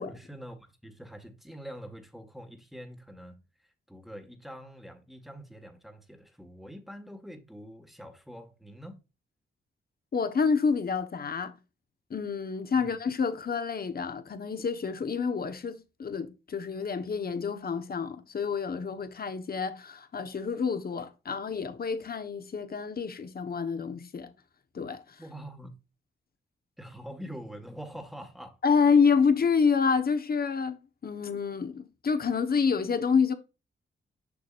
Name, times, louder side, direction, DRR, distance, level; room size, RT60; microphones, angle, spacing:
voice 1, 0.0-9.0 12.7-12.8 25.2-25.7 26.8-28.6, equal, ahead, 1.5 m, -45 dB
voice 2, 10.1-11.6 12.1-24.3 24.7-25.2 28.6-30.8 31.0-33.3, left 5 dB, 50° left, 1.1 m, -28 dB
7.1 x 6.0 x 2.5 m
cardioid pair, 80°, 20 cm